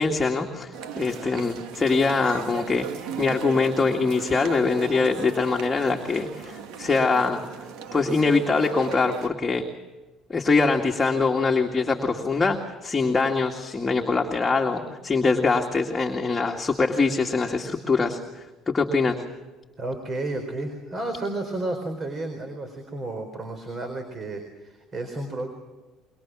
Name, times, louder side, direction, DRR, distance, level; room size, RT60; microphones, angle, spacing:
voice 1, 0.0-2.9 3.2-7.4 7.9-9.6 10.3-19.2, left 4 dB, 20° left, 1 dB, 2.1 m, -23 dB
sound 1, 0.7-9.3, right 7 dB, 75° right, 1.9 m, -37 dB
voice 2, 19.8-25.5, right 2 dB, 35° right, 6 dB, 4.3 m, -32 dB
26.5 x 23.0 x 6.3 m, 1.2 s
cardioid pair, 115°, 0 cm